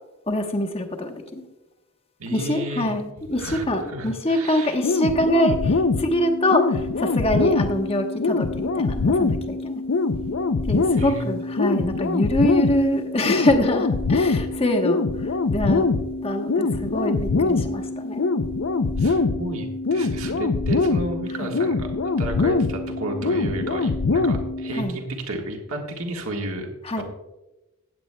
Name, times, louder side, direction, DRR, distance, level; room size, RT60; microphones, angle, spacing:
voice 1, 0.3-1.4 2.3-9.8 10.7-15.0 15.5-15.9 16.2-18.3 21.4-21.5 24.8-25.0 26.8-27.0, left 1 dB, 25° left, 4 dB, 1.1 m, -24 dB
voice 2, 2.2-2.9 3.4-4.8 11.0-11.2 19.0-26.7 27.0-27.1, right 1 dB, 70° right, 2 dB, 1.6 m, -32 dB
sound 1, 4.8-24.8, left 3 dB, 55° left, 0.5 m, -24 dB
15.5 x 9.3 x 2.2 m, 1.0 s
head